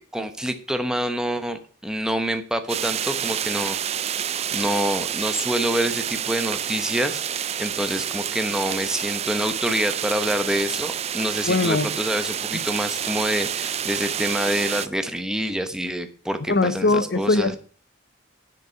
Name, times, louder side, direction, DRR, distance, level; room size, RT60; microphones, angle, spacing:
voice 1, 0.0-3.8 4.5-7.2 7.6-17.5, equal, 5° right, 0.9 m, -26 dB
sound 1, 2.7-14.9, right 9 dB, 30° right, 0.4 m, -28 dB
voice 2, 11.5-11.9 16.5-17.6, left 3 dB, 50° left, 0.8 m, -21 dB
10.5 x 6.8 x 5.6 m
head